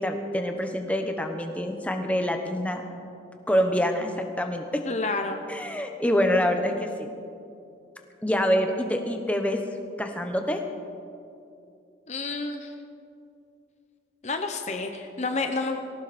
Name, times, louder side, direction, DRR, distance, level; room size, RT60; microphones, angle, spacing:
voice 1, 0.0-2.8 3.5-4.8 5.5-7.1 8.2-9.6 10.0-10.6, equal, 10° left, 4 dB, 1.0 m, -26 dB
voice 2, 4.8-5.4 12.1-12.7 14.2-15.8, left 3 dB, 40° left, 6 dB, 0.9 m, -29 dB
19.5 x 17.5 x 4.3 m, 2.5 s
head